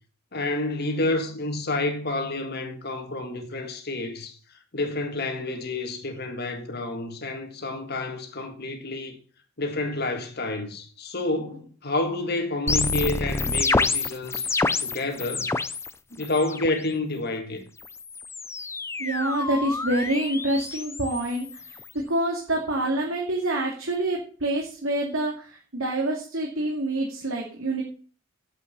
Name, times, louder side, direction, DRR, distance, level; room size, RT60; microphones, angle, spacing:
voice 1, 0.3-9.2 9.6-14.5 14.8-15.5 16.1-17.7, left 2 dB, 50° left, 1.9 m, -29 dB
sound 1, 12.7-15.9 16.2-16.8 17.8-21.9, left 3 dB, 15° left, 0.5 m, -28 dB
voice 2, 19.0-21.6 21.9-27.8, right 1 dB, 85° right, 2.5 m, -27 dB
8.3 x 8.2 x 6.9 m
head